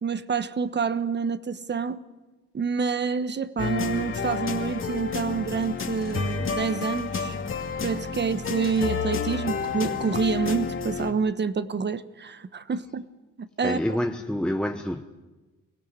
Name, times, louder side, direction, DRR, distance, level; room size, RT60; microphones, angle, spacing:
voice 1, 0.0-2.0 2.5-7.4 7.8-13.1 13.4-13.8, right 5 dB, 35° right, 1.2 m, -27 dB
sound 1, 3.6-11.1, left 5 dB, 45° left, 2.4 m, -30 dB
voice 2, 13.6-15.0, left 1 dB, 5° left, 1.1 m, -27 dB
23.5 x 16.5 x 9.7 m
cardioid pair, 90°, 30 cm